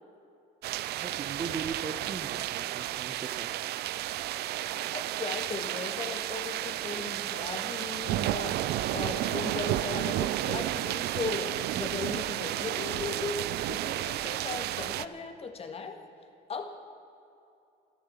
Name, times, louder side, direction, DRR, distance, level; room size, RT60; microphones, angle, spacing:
sound 1, 0.6-15.1, right 14 dB, 75° right, 0.5 m, -32 dB
voice 1, 1.0-3.5, right 5 dB, 35° right, 8 dB, 1.0 m, -39 dB
voice 2, 4.5-8.6 8.9-13.4 13.7-16.0 16.5-16.7, left 4 dB, 35° left, 4 dB, 1.8 m, -37 dB
13.5 x 13.0 x 7.3 m, 2.7 s
cardioid pair, 110°, 17 cm